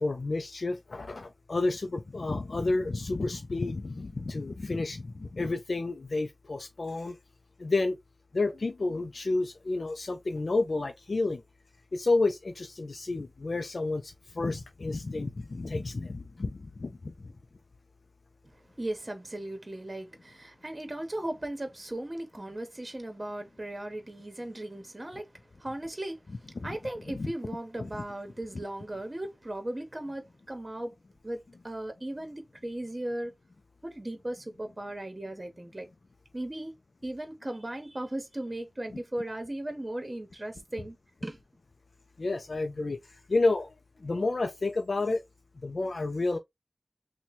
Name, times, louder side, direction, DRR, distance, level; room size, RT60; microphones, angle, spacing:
voice 1, 0.0-7.2 7.6-8.0 8.3-11.4 11.9-17.1 27.1-27.3 27.8-28.0 42.2-43.0 43.3-43.7 44.0-45.2 45.6-46.4, left 3 dB, 85° left, 0.3 m, -30 dB
voice 2, 18.4-30.9 31.2-33.3 33.8-35.9 36.3-36.7 37.0-41.0 41.2-41.4, right 1 dB, 40° right, 0.9 m, -37 dB
2.9 x 2.1 x 4.0 m
wide cardioid pair, 45°, 0 cm